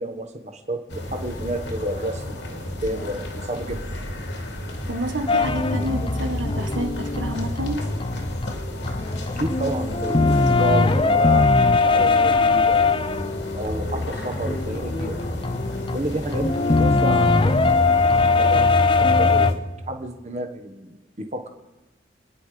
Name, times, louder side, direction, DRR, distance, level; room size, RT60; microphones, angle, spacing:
voice 1, 0.0-4.0 9.4-11.5 11.8-12.8 13.5-15.2 15.9-17.5 17.7-18.7 19.0-21.5, right 1 dB, 40° right, 5 dB, 1.3 m, -30 dB
sound 1, 0.9-19.6, left 1 dB, 75° left, 2.6 m, -31 dB
voice 2, 4.9-7.9, right 1 dB, 85° right, 6 dB, 1.5 m, -29 dB
sound 2, 5.3-8.5 8.8-19.5, left 3 dB, 30° left, 0.6 m, -21 dB
28.5 x 10.0 x 5.0 m, 1.1 s
head